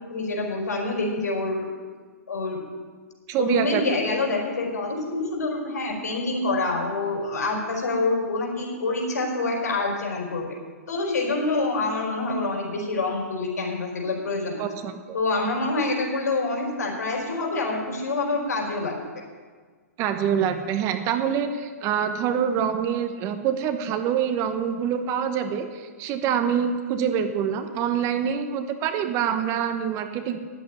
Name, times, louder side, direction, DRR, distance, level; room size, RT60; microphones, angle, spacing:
voice 1, 0.1-1.7 2.3-2.6 3.4-10.5 10.9-14.6 15.1-19.0, left 3 dB, 75° left, 0 dB, 4.8 m, -26 dB
voice 2, 3.3-3.8 14.6-15.2 20.0-30.4, right 8 dB, 35° right, 8 dB, 1.2 m, -25 dB
11.0 x 8.1 x 9.8 m, 1.6 s
hypercardioid pair, 125°, 9 cm